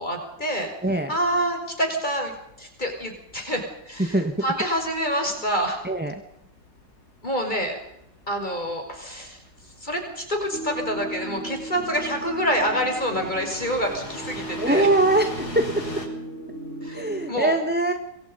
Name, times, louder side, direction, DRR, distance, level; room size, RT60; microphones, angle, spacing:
voice 1, 0.0-0.7 1.1-2.3 2.6-5.8 7.2-7.8 8.3-9.4 9.8-14.9 16.8-17.6, equal, 25° left, 4 dB, 6.1 m, -27 dB
voice 2, 0.8-1.1 4.0-4.3 5.8-6.2 14.6-16.0 16.9-17.9, right 2 dB, 5° right, 6 dB, 1.7 m, -22 dB
sound 1, 2.3-16.1, left 1 dB, 60° left, 6.2 m, -42 dB
sound 2, 10.5-17.3, right 1 dB, 40° left, 4.0 m, -36 dB
28.5 x 22.0 x 5.5 m, 0.80 s
omnidirectional pair, 1.9 m